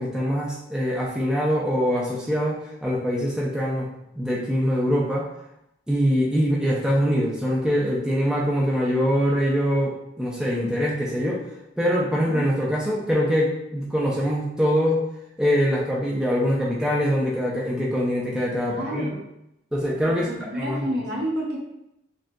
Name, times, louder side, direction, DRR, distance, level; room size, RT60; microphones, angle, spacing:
voice 1, 0.0-3.9 4.2-5.3 5.9-11.4 11.8-15.0 15.4-19.1 19.7-20.3 20.5-20.9, equal, 5° right, -6 dB, 0.6 m, -23 dB
voice 2, 12.1-12.4 18.6-19.2 20.1-21.6, equal, 55° right, -2 dB, 0.9 m, -30 dB
6.1 x 2.5 x 2.2 m, 0.84 s
head